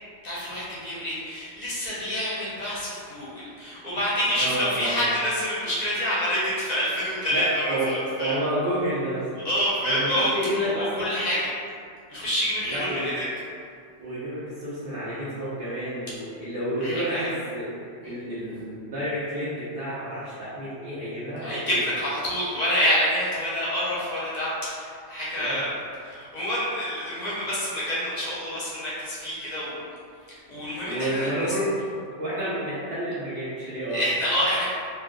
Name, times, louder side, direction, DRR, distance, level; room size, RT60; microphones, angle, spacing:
voice 1, 0.2-8.4 9.4-11.5 12.1-13.3 16.8-17.2 18.0-18.1 21.4-25.7 26.0-29.8 30.5-31.5 33.9-34.6, equal, 45° left, -9 dB, 0.7 m, -27 dB
voice 2, 4.4-5.0 7.3-9.4 9.8-11.1 12.7-13.1 14.0-21.8 25.3-25.6 30.8-31.7 32.1-34.0, equal, 55° right, -11 dB, 0.9 m, -30 dB
2.5 x 2.3 x 3.5 m, 2.3 s
omnidirectional pair, 1.2 m